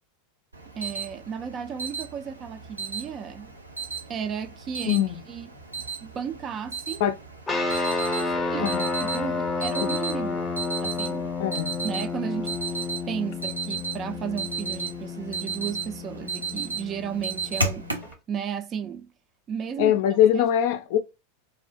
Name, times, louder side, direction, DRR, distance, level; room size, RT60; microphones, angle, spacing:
Alarm, 0.5-18.1, right 4 dB, 85° right, 0.5 m, -35 dB
voice 1, 0.8-3.5 4.1-5.0 5.3-5.5 6.0-7.0 8.1-10.5 10.8-11.3 11.8-17.9 18.3-19.1 19.5-19.9 20.3-20.5, right 7 dB, 30° right, 0.4 m, -34 dB
sound 1, 7.5-18.1, left 3 dB, 20° left, 0.7 m, -31 dB
voice 2, 11.4-11.8 16.4-16.6 19.8-21.0, left 10 dB, 55° left, 0.4 m, -22 dB
2.6 x 2.0 x 2.4 m
figure-of-eight pair, 90°, 0 cm